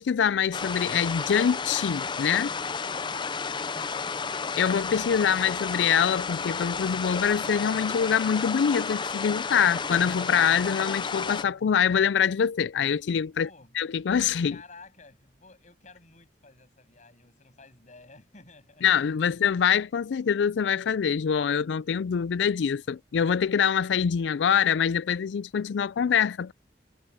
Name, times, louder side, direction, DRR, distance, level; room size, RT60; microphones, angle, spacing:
voice 1, 0.0-2.6 4.6-13.5 13.8-14.6 18.8-26.5, left 7 dB, 85° left, 0.4 m, -25 dB
sound 1, 0.5-11.4, left 5 dB, 25° left, 0.5 m, -32 dB
voice 2, 13.4-13.7 14.5-18.9, left 3 dB, 45° left, 7.8 m, -53 dB
head